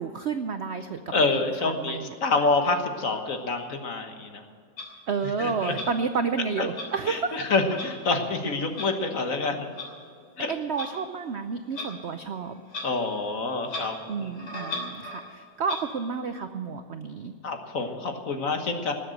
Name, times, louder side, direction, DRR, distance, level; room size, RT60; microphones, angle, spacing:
voice 1, 0.0-1.3 1.6-2.1 5.1-7.5 10.5-12.6 14.1-17.3, right 5 dB, 65° right, 8 dB, 0.6 m, -30 dB
voice 2, 1.1-4.4 5.4-5.7 6.6-6.7 7.1-9.7 10.4-10.5 12.8-14.3 17.4-18.9, left 3 dB, 50° left, 5 dB, 1.6 m, -27 dB
Clock, 4.8-4.9 5.7-5.9 6.7-6.9 7.7-7.9 8.7-8.9 9.8-9.9 10.8-10.9 11.7-11.9 12.7-12.9 13.1-13.2 13.6-13.9 14.3-15.2 15.6-15.8, left 2 dB, 80° left, 4.0 m, -35 dB
19.5 x 8.0 x 7.7 m, 2.2 s
omnidirectional pair, 1.9 m